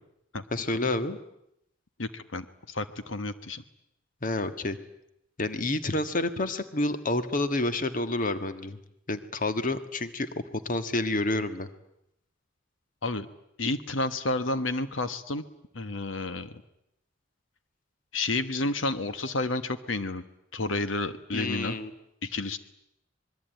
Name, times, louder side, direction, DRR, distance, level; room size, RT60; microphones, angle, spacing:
voice 1, 0.5-1.2 4.2-4.8 5.4-8.8 9.1-11.7 21.3-21.9, left 2 dB, 45° left, 10 dB, 1.5 m, -29 dB
voice 2, 2.0-3.6 13.0-13.3 13.6-15.4 15.7-16.5 18.1-20.2 20.5-21.8 22.2-22.6, left 2 dB, 85° left, 11 dB, 1.3 m, -30 dB
26.0 x 22.0 x 9.1 m, 0.80 s
head